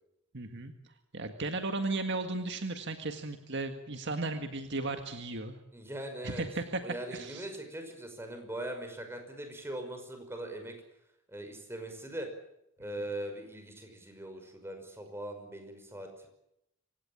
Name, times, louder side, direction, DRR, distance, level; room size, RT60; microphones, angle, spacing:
voice 1, 0.3-0.7 1.1-5.6 6.2-6.8 7.1-7.5, right 2 dB, 55° right, 6 dB, 1.8 m, -35 dB
voice 2, 5.7-6.4 6.8-10.7 11.3-12.3 12.8-16.3, right 1 dB, 10° right, 5 dB, 5.6 m, -41 dB
27.0 x 17.0 x 9.0 m, 0.83 s
head